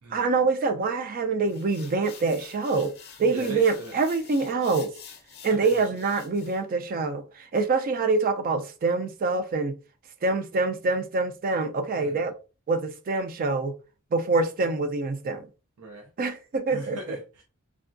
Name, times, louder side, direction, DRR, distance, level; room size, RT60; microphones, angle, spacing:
voice 1, 0.1-2.9 3.2-4.9 5.4-9.7 10.2-12.3 12.7-13.7 14.1-15.4 16.2-17.2, right 3 dB, 40° right, 0.3 m, -25 dB
sound 1, 1.5-6.6, left 7 dB, 45° left, 0.6 m, -48 dB
voice 2, 3.3-3.9 5.6-5.8 12.0-12.2 15.8-16.1 16.7-17.4, right 1 dB, 90° right, 0.5 m, -39 dB
3.4 x 2.2 x 2.4 m
head